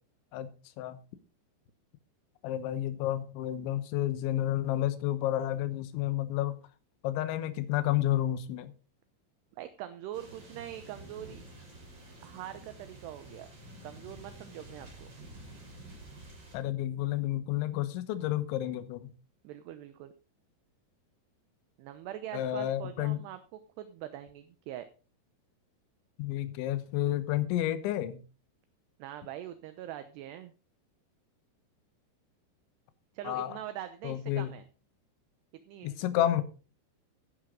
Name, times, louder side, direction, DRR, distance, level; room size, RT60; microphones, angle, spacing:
voice 1, 0.3-1.0 2.4-6.6 7.0-8.7 16.5-19.1 22.3-23.2 26.2-28.2 33.3-33.5 34.0-34.5 35.8-36.4, left 13 dB, 75° left, 12 dB, 3.3 m, -30 dB
voice 2, 9.6-11.5 12.2-13.5 13.8-15.1 19.4-20.1 21.8-24.9 29.0-30.5 33.1-34.6 35.7-36.3, right 12 dB, 75° right, 10 dB, 2.6 m, -43 dB
sound 1, 10.1-16.6, right 1 dB, 25° right, 4.2 m, -50 dB
14.0 x 10.0 x 3.8 m, 0.35 s
omnidirectional pair, 5.6 m